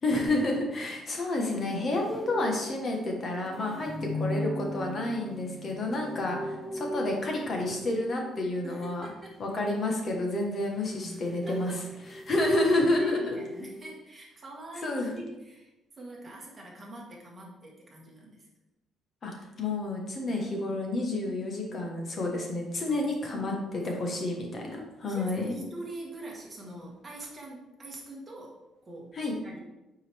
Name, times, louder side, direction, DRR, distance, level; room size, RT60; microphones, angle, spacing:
voice 1, 0.0-3.9 4.2-9.1 9.4-11.8 12.1-13.4 14.8-15.1 19.2-23.5 23.8-25.6 29.1-29.3, left 2 dB, 30° left, 1 dB, 1.3 m, -30 dB
sound 1, 1.4-8.6 10.5-13.8, equal, 5° left, 0.4 m, -38 dB
voice 2, 3.7-4.2 6.2-6.4 8.6-9.4 11.5-11.8 13.0-15.7 16.0-18.5 22.9-24.2 25.1-29.1 29.4-29.6, right 2 dB, 15° right, -3 dB, 1.6 m, -44 dB
8.5 x 4.9 x 3.5 m, 0.99 s
cardioid pair, 175°, 0 cm